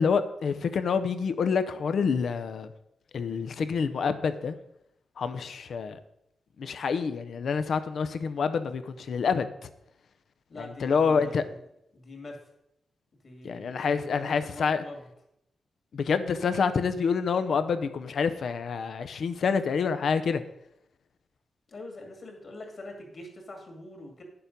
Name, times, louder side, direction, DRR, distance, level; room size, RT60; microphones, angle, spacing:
voice 1, 0.0-2.7 3.1-4.5 5.2-6.0 6.6-9.5 10.8-11.4 13.4-14.8 15.9-20.4, left 5 dB, 60° left, 11 dB, 0.7 m, -27 dB
voice 2, 10.5-11.6 11.9-12.4 13.2-15.1 21.7-24.2, left 2 dB, 40° left, 3 dB, 2.3 m, -44 dB
10.0 x 6.9 x 5.3 m, 0.80 s
wide cardioid pair, 150°, 0 cm